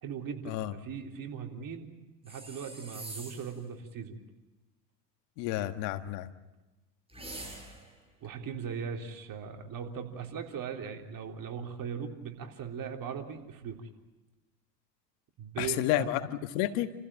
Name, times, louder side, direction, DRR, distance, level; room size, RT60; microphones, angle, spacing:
voice 1, 0.0-1.9 2.2-4.2 8.2-13.8 15.4-16.1, right 7 dB, 45° right, 3 dB, 3.7 m, -39 dB
sound 1, 2.2-3.6 7.1-8.0, right 1 dB, 10° right, 6.5 m, -44 dB
voice 2, 5.4-6.3 15.6-16.9, left 14 dB, 70° left, 10 dB, 1.6 m, -30 dB
29.5 x 15.5 x 9.0 m, 1.1 s
supercardioid pair, 95°, 49 cm